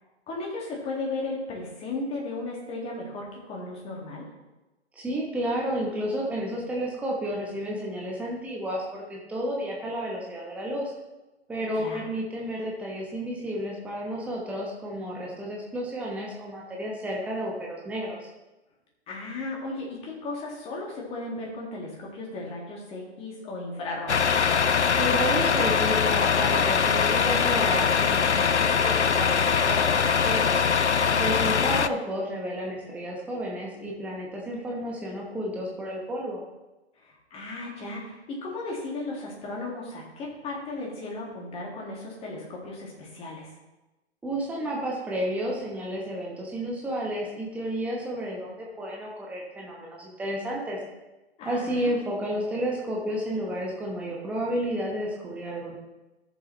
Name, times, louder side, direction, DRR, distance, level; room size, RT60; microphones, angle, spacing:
voice 1, 0.3-4.3 11.7-12.0 19.1-24.4 31.1-31.7 37.0-43.5 51.4-51.9, left 2 dB, 20° left, -2 dB, 2.2 m, -35 dB
voice 2, 4.9-10.9 11.5-18.2 25.0-30.6 31.2-36.4 44.2-50.8 51.4-55.8, equal, 5° right, -3 dB, 1.1 m, -31 dB
Truck, 24.1-31.9, left 6 dB, 85° left, 0.5 m, -22 dB
14.0 x 7.1 x 3.2 m, 1.1 s
figure-of-eight pair, 120°, 33 cm